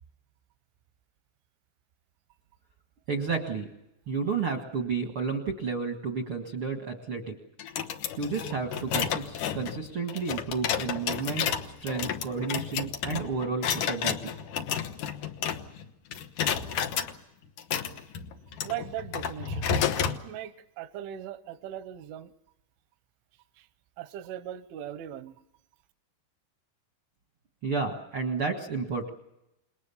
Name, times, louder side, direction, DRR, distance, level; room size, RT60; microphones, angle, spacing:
voice 1, 3.1-3.7 4.1-7.4 8.2-11.5 11.8-14.3 27.6-29.1, right 5 dB, 60° right, 4 dB, 1.4 m, -31 dB
sound 1, 7.6-15.9 16.1-17.1 17.6-20.2, left 8 dB, 80° left, 1.8 m, -31 dB
voice 2, 18.6-22.3 23.6-23.7 24.0-25.3, right 11 dB, 85° right, 11 dB, 3.4 m, -39 dB
29.0 x 20.5 x 7.1 m, 0.86 s
omnidirectional pair, 5.4 m